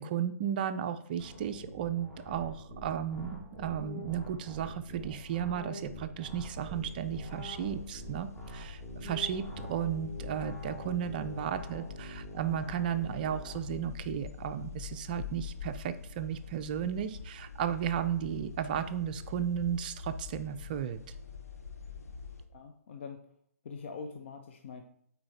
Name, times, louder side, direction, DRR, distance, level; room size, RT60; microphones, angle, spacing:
voice 1, 0.0-21.0, right 9 dB, 35° right, 11 dB, 0.5 m, -34 dB
sound 1, 1.2-13.6, equal, 10° left, 2.1 m, -45 dB
sound 2, 6.3-22.4, left 5 dB, 75° left, 1.1 m, -45 dB
voice 2, 22.5-23.2 23.6-24.8, left 5 dB, 50° left, 4 dB, 0.8 m, -43 dB
8.7 x 4.5 x 4.2 m, 0.66 s
figure-of-eight pair, 135°, 8 cm